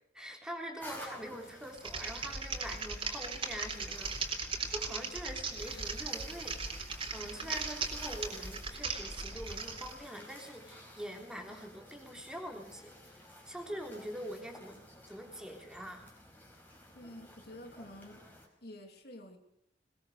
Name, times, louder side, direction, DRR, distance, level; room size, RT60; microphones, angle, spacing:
voice 1, 0.1-13.2 13.5-16.1, equal, 5° right, 2 dB, 3.5 m, -44 dB
sound 1, 0.8-18.5, left 1 dB, 10° left, 4.9 m, -53 dB
Typing, 1.7-9.9, right 4 dB, 30° right, 3.8 m, -38 dB
voice 2, 16.9-18.2 18.6-19.4, left 1 dB, 60° left, 4 dB, 3.2 m, -49 dB
21.0 x 21.0 x 6.6 m, 0.72 s
head